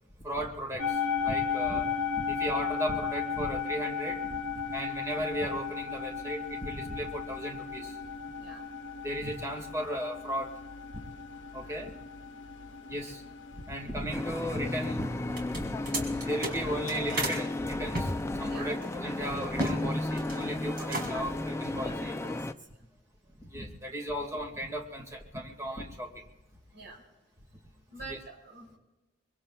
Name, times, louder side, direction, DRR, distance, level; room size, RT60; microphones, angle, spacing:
voice 1, 0.2-1.8 2.1-4.4 4.7-8.0 9.0-10.5 11.5-11.9 12.9-13.2 13.5-15.8 16.2-22.1 23.4-26.2 28.1-28.2, equal, 15° right, 1 dB, 2.1 m, -36 dB
sound 1, 0.8-17.0, left 6 dB, 70° left, 0.8 m, -36 dB
sound 2, 14.1-22.5, left 2 dB, 15° left, 0.5 m, -34 dB
Opening Antique Trunk - Latches and Opening, 15.3-17.4 17.9-19.8 20.1-20.4 20.7-21.4, right 1 dB, 50° right, 3.3 m, -34 dB
voice 2, 21.8-22.7 26.7-27.0 27.9-28.8, right 2 dB, 65° right, -2 dB, 6.2 m, -46 dB
24.5 x 23.5 x 2.4 m, 1.1 s
head